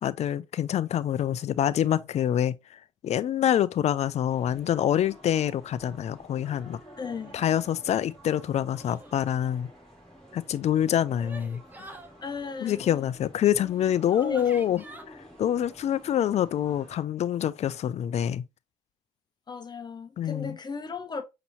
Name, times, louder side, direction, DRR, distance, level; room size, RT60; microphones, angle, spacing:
voice 1, 0.0-6.8 7.3-9.7 10.3-11.6 12.6-18.4 20.2-20.6, left 10 dB, 55° left, 0.4 m, -26 dB
sound 1, 4.3-17.0, equal, 5° left, 2.9 m, -51 dB
voice 2, 7.0-7.4 12.2-13.1 14.2-14.4 19.5-21.2, left 4 dB, 30° left, 0.9 m, -36 dB
sound 2, 8.7-9.2 10.6-12.1 13.6-13.7 14.1-15.0, right 2 dB, 15° right, 1.0 m, -46 dB
5.3 x 2.9 x 2.8 m
supercardioid pair, 65°, 14 cm